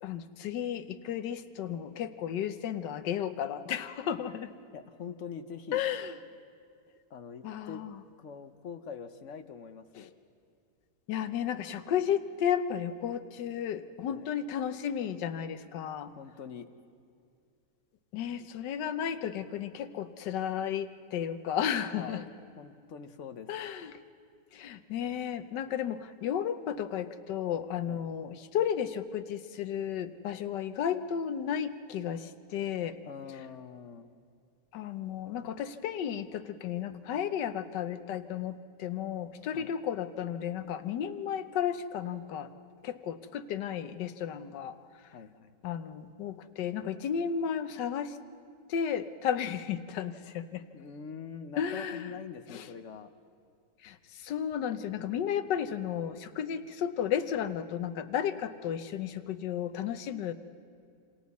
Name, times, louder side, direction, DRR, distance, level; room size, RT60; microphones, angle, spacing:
voice 1, 0.0-4.5 5.7-6.1 7.4-8.0 10.0-10.1 11.1-16.1 18.1-22.2 23.5-24.0 24.5-33.0 34.7-42.5 42.8-44.7 45.6-48.2 48.7-50.6 51.6-52.1 52.5-52.7 53.8-60.3, left 9 dB, 80° left, 11 dB, 1.4 m, -33 dB
voice 2, 4.7-5.8 7.1-7.8 8.2-10.1 14.1-14.3 16.2-16.7 22.0-22.3 22.6-23.5 27.8-28.0 33.0-34.2 39.5-39.7 45.1-45.6 50.7-53.1, left 6 dB, 55° left, 9 dB, 1.0 m, -44 dB
27.5 x 27.0 x 4.2 m, 2.3 s
omnidirectional pair, 1.8 m